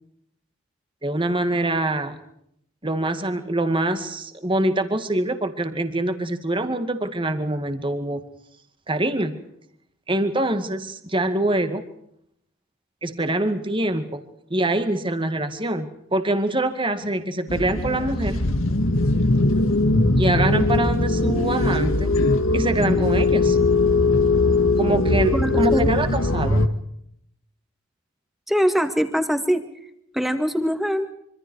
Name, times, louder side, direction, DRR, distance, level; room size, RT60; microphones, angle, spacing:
voice 1, 1.0-2.2 2.8-8.2 8.9-9.4 10.1-11.8 13.0-14.2 14.5-18.4 20.2-22.1 22.5-23.6 24.8-26.7, right 1 dB, 25° right, 8 dB, 2.2 m, -24 dB
sound 1, 17.5-26.7, left 2 dB, 80° left, 2.1 m, -20 dB
voice 2, 25.3-25.9 28.5-29.7 30.1-31.1, equal, ahead, 8 dB, 2.1 m, -22 dB
26.0 x 25.5 x 4.7 m, 0.72 s
head